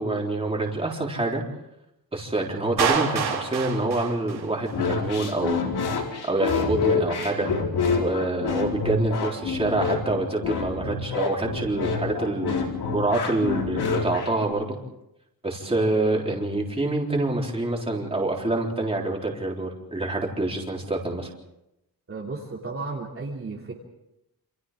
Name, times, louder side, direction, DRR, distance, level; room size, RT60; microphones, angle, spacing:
voice 1, 0.0-1.4 2.1-5.6 6.2-7.5 8.0-12.6 12.9-14.8 15.4-21.3, right 2 dB, 15° right, -1 dB, 4.0 m, -26 dB
Clapping, 2.8-4.8, right 6 dB, 75° right, 3.2 m, -26 dB
sound 1, 4.7-14.5, left 5 dB, 85° left, 4.5 m, -27 dB
voice 2, 22.1-23.7, right 3 dB, 35° right, -3 dB, 2.8 m, -34 dB
29.0 x 27.5 x 3.8 m, 0.86 s
wide cardioid pair, 165°, 38 cm